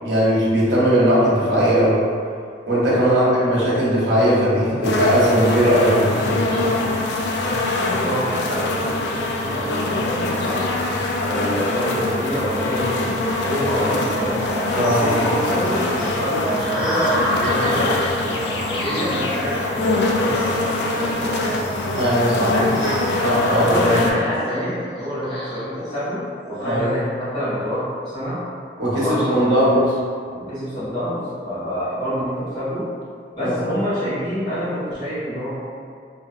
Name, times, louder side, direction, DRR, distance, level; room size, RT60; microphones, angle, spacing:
voice 1, 0.0-2.0 2.7-6.8 14.7-15.1 22.0-22.5 23.2-23.8 26.6-26.9 28.8-29.9 33.4-33.5, equal, 75° right, -8 dB, 0.8 m, -18 dB
sound 1, 4.8-24.1, left 2 dB, 65° left, 0.3 m, -23 dB
voice 2, 7.1-10.8 11.2-14.4 14.7-21.7 22.3-22.9 23.5-28.4 28.9-29.8 30.3-32.9 33.3-35.6, equal, 25° left, -16 dB, 1.2 m, -27 dB
sound 2, 14.0-27.0, right 1 dB, ahead, 0.6 m, -30 dB
2.8 x 2.2 x 2.4 m, 2.2 s
head